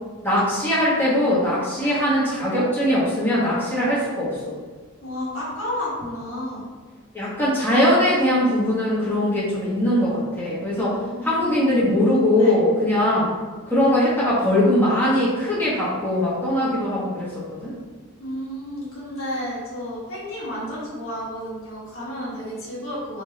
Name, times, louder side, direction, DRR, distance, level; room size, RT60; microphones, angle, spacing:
voice 1, 0.2-4.6 7.1-11.0 11.2-13.3 13.7-17.7, left 1 dB, 10° left, -9 dB, 1.1 m, -21 dB
voice 2, 5.0-6.7 11.1-11.8 12.4-12.5 18.2-23.2, equal, 70° left, -9 dB, 1.4 m, -32 dB
3.5 x 3.0 x 3.1 m, 1.4 s
head